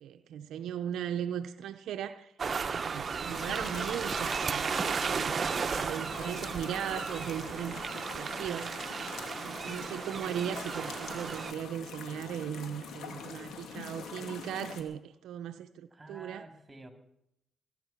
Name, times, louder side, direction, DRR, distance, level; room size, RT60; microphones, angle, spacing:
voice 1, 0.0-2.3 2.7-4.7 5.0-8.9 9.4-16.5, right 9 dB, 75° right, 0.7 m, -38 dB
sound 1, 2.4-11.5, right 5 dB, 40° right, 0.9 m, -34 dB
sound 2, 3.3-14.8, left 5 dB, 75° left, 2.7 m, -44 dB
voice 2, 15.9-16.9, right 2 dB, 15° right, 3.2 m, -50 dB
23.0 x 9.9 x 5.9 m
supercardioid pair, 75°, 0 cm